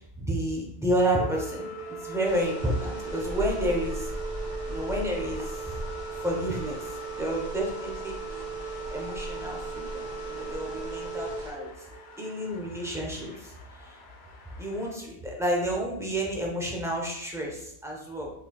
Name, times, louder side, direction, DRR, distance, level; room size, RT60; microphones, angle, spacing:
voice 1, 0.0-1.7 2.0-4.1 4.7-5.7 6.1-6.9 7.2-8.5 8.9-11.7 12.2-13.5 13.8-13.9 14.6-18.3, right 1 dB, 5° right, -2 dB, 0.4 m, -30 dB
sound 1, 1.0-14.9, left 3 dB, 80° left, 0.9 m, -50 dB
Organ, 1.2-12.3, right 5 dB, 85° right, 0.9 m, -38 dB
sound 2, 2.2-11.5, left 1 dB, 45° right, 1.2 m, -39 dB
3.7 x 3.3 x 2.3 m, 0.79 s
omnidirectional pair, 1.1 m